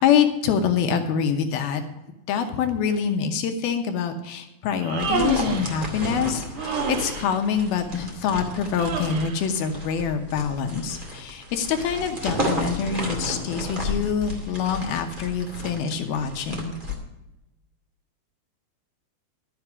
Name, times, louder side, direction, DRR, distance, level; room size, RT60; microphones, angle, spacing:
voice 1, 0.0-1.8 2.3-16.8, left 7 dB, 75° left, 6 dB, 2.4 m, -25 dB
Human voice, 4.7-5.7 6.6-7.3 8.7-9.4, right 5 dB, 65° right, 1.9 m, -28 dB
sound 1, 5.0-16.9, left 1 dB, 30° right, 0.9 m, -33 dB
12.0 x 7.8 x 6.0 m, 0.95 s
omnidirectional pair, 5.1 m